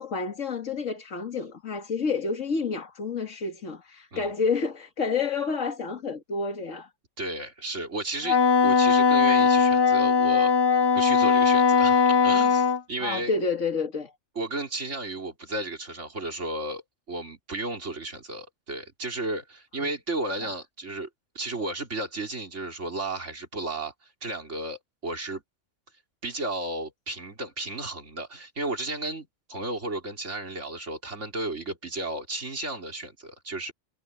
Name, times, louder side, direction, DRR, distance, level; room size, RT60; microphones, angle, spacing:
voice 1, 0.0-6.9 13.0-14.1 20.4-20.5, left 4 dB, 90° left, 2.2 m, -29 dB
voice 2, 7.2-10.5 10.9-13.3 14.4-16.8 17.1-21.1 21.3-25.4 26.2-33.7, right 2 dB, 75° right, 3.9 m, -33 dB
Wind instrument woodwind instrument, 8.2-12.8, left 5 dB, 20° left, 1.7 m, -20 dB
omnidirectional pair, 1.3 m